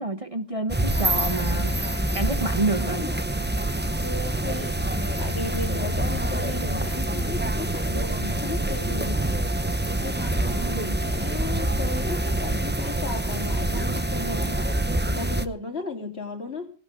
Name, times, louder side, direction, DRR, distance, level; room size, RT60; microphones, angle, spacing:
voice 1, 0.0-3.0, right 2 dB, 30° right, 8 dB, 1.1 m, -28 dB
sound 1, 0.7-15.5, right 1 dB, 10° right, 0.8 m, -26 dB
voice 2, 2.8-3.7 4.0-4.8 5.2-9.4 10.0-14.7 15.1-16.7, left 3 dB, 55° left, 2 dB, 4.0 m, -35 dB
19.0 x 18.0 x 3.7 m, 0.37 s
omnidirectional pair, 1.3 m